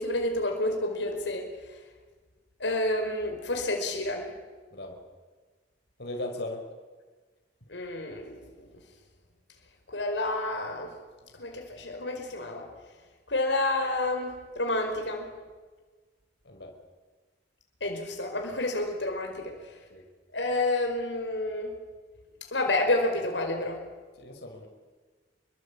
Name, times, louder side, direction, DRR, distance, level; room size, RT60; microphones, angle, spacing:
voice 1, 0.0-1.5 2.6-4.3 7.7-8.3 9.9-11.0 11.4-12.7 13.3-15.3 17.8-19.5 20.3-21.7 22.5-23.8, left 2 dB, 85° left, 3 dB, 5.2 m, -29 dB
voice 2, 6.0-6.6 16.5-16.7 19.9-20.0 24.2-24.7, left 2 dB, 65° left, 2 dB, 5.4 m, -37 dB
29.0 x 23.5 x 8.7 m, 1.4 s
head